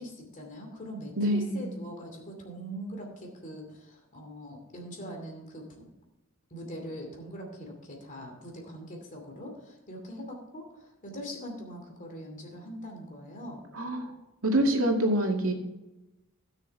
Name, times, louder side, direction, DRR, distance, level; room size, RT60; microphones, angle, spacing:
voice 1, 0.0-5.9 6.5-13.6, equal, 40° left, 2 dB, 2.6 m, -42 dB
voice 2, 1.2-1.7 13.7-14.1 14.4-15.5, right 1 dB, 75° right, 1 dB, 2.1 m, -26 dB
16.5 x 6.6 x 3.5 m, 1.0 s
head